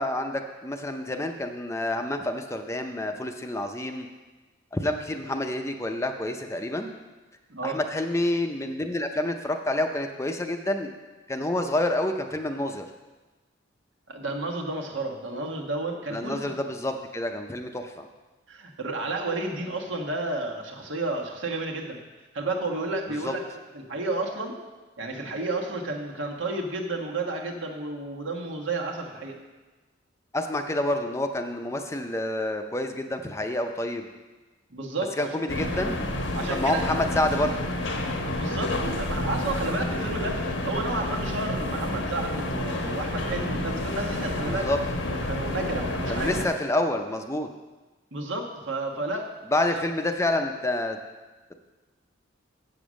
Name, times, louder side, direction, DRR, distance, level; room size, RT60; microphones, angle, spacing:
voice 1, 0.0-4.1 4.7-6.9 7.6-10.9 11.3-12.8 16.1-18.1 23.2-23.3 30.3-34.1 35.2-36.0 36.5-37.7 44.5-44.8 46.1-47.5 49.5-51.0, left 1 dB, 15° left, 5 dB, 0.5 m, -28 dB
voice 2, 14.1-16.6 18.5-22.0 22.3-23.4 23.7-24.6 25.0-29.4 34.7-35.3 36.3-36.9 38.3-44.7 45.3-46.3 48.1-49.3 49.7-49.8, right 2 dB, 85° right, 0 dB, 1.4 m, -31 dB
sound 1, 35.5-46.5, left 1 dB, 85° left, 1.1 m, -29 dB
7.9 x 7.0 x 6.3 m, 1.2 s
head